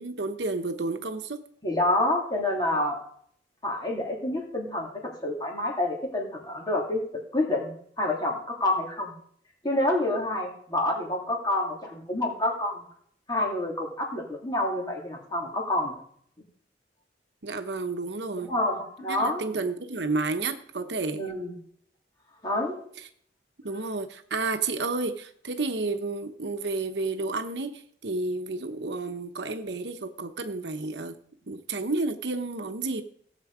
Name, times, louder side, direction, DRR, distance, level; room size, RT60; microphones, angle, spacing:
voice 1, 0.0-1.4 17.4-18.5 19.1-21.2 23.6-31.2 31.5-33.0, right 3 dB, 75° right, 8 dB, 1.0 m, -31 dB
voice 2, 1.6-3.0 3.6-4.9 5.2-7.0 7.3-9.1 9.6-12.8 13.3-16.0 18.3-19.4 21.1-21.5 22.4-22.8, left 1 dB, 25° left, -1 dB, 3.1 m, -28 dB
16.5 x 7.6 x 4.9 m, 0.62 s
head